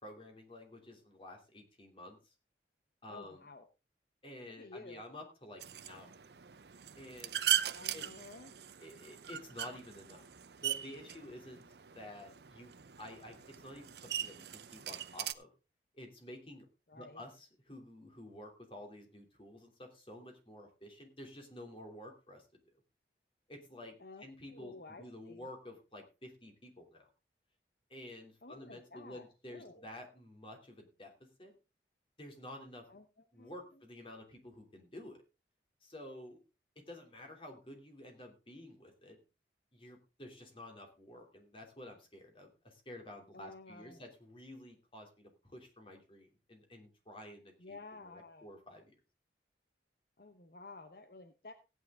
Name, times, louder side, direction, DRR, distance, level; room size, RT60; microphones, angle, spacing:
voice 1, 0.0-2.2 3.0-3.4 4.2-6.3 7.0-7.5 7.9-8.1 8.8-10.2 10.6-11.6 11.9-12.7 13.0-15.5 15.9-16.7 16.9-22.5 23.5-24.7 25.0-27.1 27.9-31.5 32.2-32.9 33.3-35.2 35.8-36.4 36.8-39.2 39.7-47.8 48.0-48.9, left 1 dB, 30° left, 4 dB, 3.0 m, -51 dB
voice 2, 3.1-3.7 4.5-5.0 7.7-8.5 16.9-17.2 24.0-24.2 24.5-25.5 28.4-29.9 32.9-33.8 43.3-44.0 47.6-48.5 50.2-51.5, left 3 dB, 55° left, 8 dB, 1.0 m, -52 dB
sound 1, 5.6-15.3, right 11 dB, 70° right, 0.7 m, -39 dB
16.0 x 9.3 x 3.7 m, 0.30 s
head